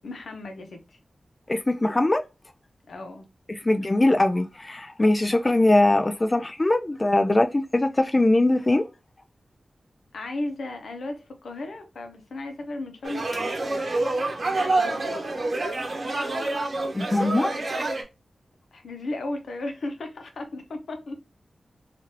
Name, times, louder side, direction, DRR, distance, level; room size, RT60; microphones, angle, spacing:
voice 1, 0.0-1.0 2.9-3.3 10.1-13.7 14.6-15.3 18.7-21.2, left 2 dB, 85° left, 0.7 m, -35 dB
voice 2, 1.5-2.2 3.5-8.9 16.9-17.6, left 2 dB, 30° left, 0.3 m, -21 dB
sound 1, 13.0-18.0, right 2 dB, 60° right, 0.8 m, -27 dB
3.1 x 2.5 x 2.8 m
cardioid pair, 55°, 0 cm